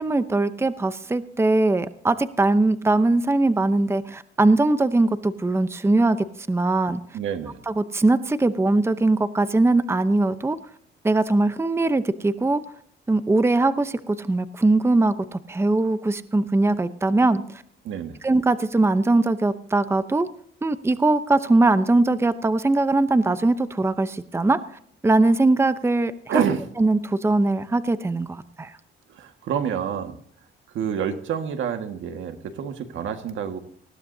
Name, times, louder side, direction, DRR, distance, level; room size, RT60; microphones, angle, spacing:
voice 1, 0.0-7.0 7.7-10.6 11.0-12.6 13.1-17.6 18.2-20.3 20.6-24.6 25.0-26.4 26.8-28.7, right 2 dB, 10° right, 12 dB, 0.8 m, -21 dB
voice 2, 7.1-7.6 17.8-18.2 26.3-26.6 29.1-30.2 30.7-33.6, right 8 dB, 75° right, 7 dB, 1.8 m, -28 dB
19.5 x 15.5 x 2.8 m, 0.62 s
cardioid pair, 90°, 20 cm